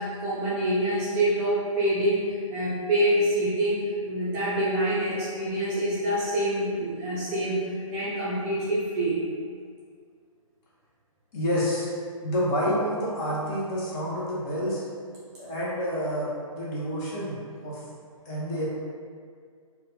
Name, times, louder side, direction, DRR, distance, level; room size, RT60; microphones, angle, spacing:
voice 1, 0.0-9.2, right 1 dB, 20° right, -10 dB, 0.6 m, -26 dB
voice 2, 11.3-11.9 12.2-14.8 15.4-17.4 17.6-17.8 18.2-18.7, equal, 25° left, -7 dB, 0.9 m, -28 dB
3.4 x 2.3 x 3.3 m, 2.1 s
hypercardioid pair, 145°, 18 cm